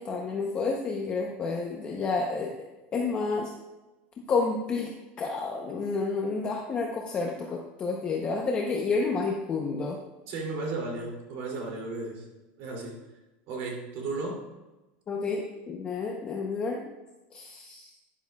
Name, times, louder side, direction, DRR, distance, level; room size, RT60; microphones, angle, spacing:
voice 1, 0.0-2.5 2.9-3.5 4.3-4.9 5.2-10.0 15.1-16.9 17.3-17.9, left 4 dB, 20° left, 0 dB, 0.8 m, -30 dB
voice 2, 10.3-12.3 12.6-13.0 13.5-14.5, right 3 dB, 50° right, -1 dB, 2.8 m, -34 dB
12.0 x 10.5 x 2.3 m, 1.1 s
cardioid pair, 170°, 5 cm